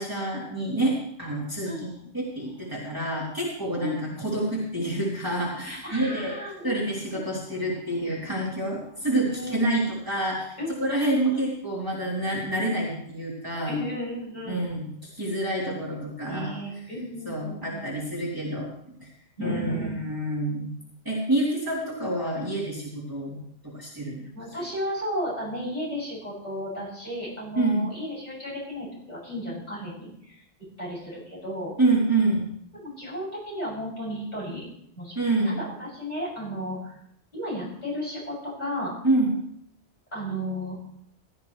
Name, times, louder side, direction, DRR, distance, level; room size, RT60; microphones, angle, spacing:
voice 1, 0.0-1.9 2.1-6.4 6.6-13.8 14.5-16.5 17.2-18.7 19.0-19.1 19.4-20.7 21.0-23.4 23.6-24.2 27.5-27.9 31.8-32.5 35.1-35.6 39.0-39.3, right 2 dB, 15° right, -6 dB, 3.3 m, -27 dB
voice 2, 1.7-2.1 3.8-4.2 5.6-6.7 7.1-7.2 9.3-9.6 10.6-11.4 13.7-14.6 15.6-15.8 16.3-17.8 19.4-20.0 24.3-30.4 30.8-31.7 32.7-34.7 35.0-35.2 35.5-37.0 37.3-38.9 40.1-40.8, equal, 35° left, -6 dB, 7.1 m, -34 dB
16.5 x 13.5 x 3.2 m, 0.71 s
omnidirectional pair, 1.2 m